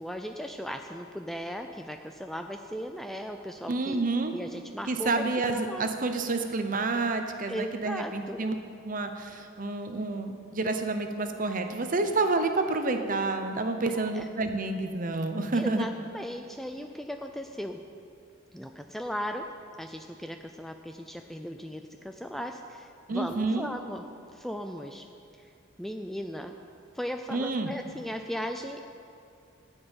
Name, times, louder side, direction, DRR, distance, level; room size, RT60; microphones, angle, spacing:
voice 1, 0.0-4.0 4.3-5.1 5.5-5.9 7.5-8.4 13.9-14.3 15.5-17.8 18.5-19.5 19.8-24.0 24.3-25.1 25.8-26.5 26.9-28.9, equal, ahead, 5 dB, 0.3 m, -37 dB
voice 2, 3.7-4.3 4.9-8.6 8.8-15.9 23.1-23.7 27.3-27.7, right 3 dB, 40° right, 6 dB, 0.8 m, -29 dB
14.0 x 5.5 x 8.9 m, 2.5 s
head